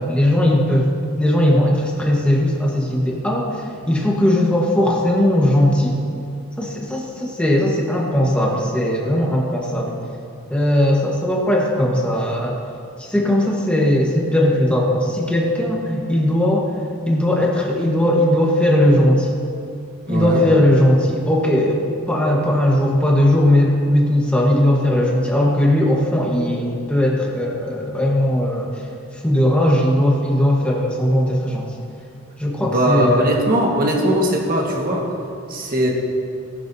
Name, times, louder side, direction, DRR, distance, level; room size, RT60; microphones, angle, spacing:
voice 1, 0.0-6.0 6.6-10.0 10.5-12.6 13.0-16.7 17.0-19.4 20.1-28.7 29.2-31.7 32.4-33.3, left 1 dB, 5° left, -2 dB, 1.2 m, -18 dB
voice 2, 20.1-20.4 32.6-35.1 35.5-35.9, equal, 40° right, -1 dB, 1.5 m, -19 dB
14.5 x 11.5 x 2.7 m, 2.4 s
head